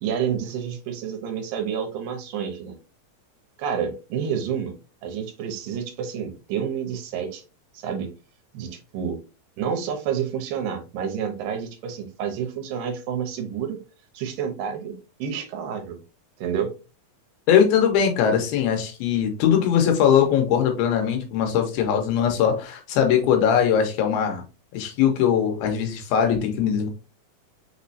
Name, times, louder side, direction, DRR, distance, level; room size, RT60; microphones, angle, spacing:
voice 1, 0.0-2.8 3.6-4.8 5.0-7.4 7.7-8.1 8.5-9.2 9.6-13.8 14.1-16.0 16.4-16.7, right 8 dB, 75° right, 2.4 m, -29 dB
voice 2, 17.5-24.4 24.7-26.9, left 8 dB, 90° left, 2.9 m, -21 dB
6.0 x 3.1 x 2.7 m
omnidirectional pair, 4.2 m